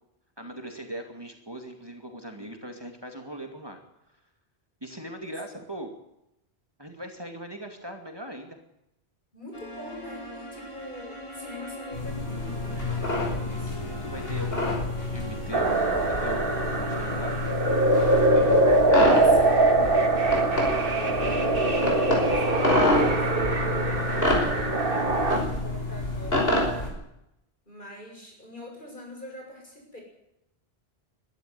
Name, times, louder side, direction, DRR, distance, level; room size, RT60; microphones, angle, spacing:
voice 1, 0.4-3.8 4.8-5.9 6.8-8.6 14.0-14.9 15.1-16.5 16.7-17.4, right 1 dB, 25° right, 3 dB, 2.5 m, -39 dB
voice 2, 9.3-13.8 18.8-20.3 20.8-26.5 27.7-30.0, left 1 dB, 50° left, 0 dB, 7.7 m, -44 dB
sound 1, 9.5-18.8 20.3-24.5, equal, 30° left, 3.7 m, -41 dB
sound 2, 11.9-26.9, left 2 dB, 70° left, 5.9 m, -28 dB
sound 3, 15.5-25.4, right 2 dB, 60° right, 2.1 m, -23 dB
22.0 x 12.5 x 9.6 m, 0.84 s
omnidirectional pair, 1.1 m